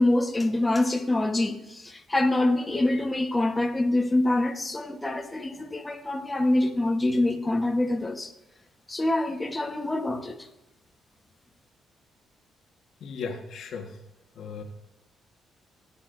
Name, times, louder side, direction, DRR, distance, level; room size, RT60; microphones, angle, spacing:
voice 1, 0.0-8.3 8.9-10.5, left 2 dB, 15° left, 1.2 m, -25 dB
voice 2, 13.0-14.0 14.3-14.6, left 5 dB, 70° left, 1.5 m, -36 dB
18.5 x 8.5 x 2.6 m
cardioid pair, 90°, 0 cm